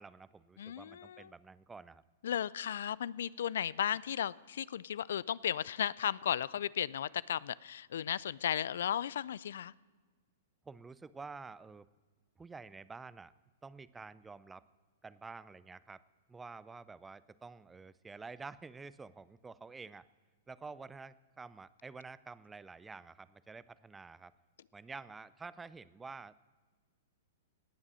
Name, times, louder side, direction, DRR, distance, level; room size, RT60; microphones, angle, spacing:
voice 1, 0.0-2.0 10.7-11.9 12.4-13.3 13.6-14.6 15.0-16.0 16.3-20.1 20.5-24.3 24.7-26.4, right 4 dB, 10° right, 17 dB, 0.5 m, -49 dB
voice 2, 0.6-1.3 2.2-9.7, left 9 dB, 70° left, 22 dB, 0.3 m, -35 dB
18.5 x 7.3 x 6.2 m, 1.4 s
hypercardioid pair, 115°, 0 cm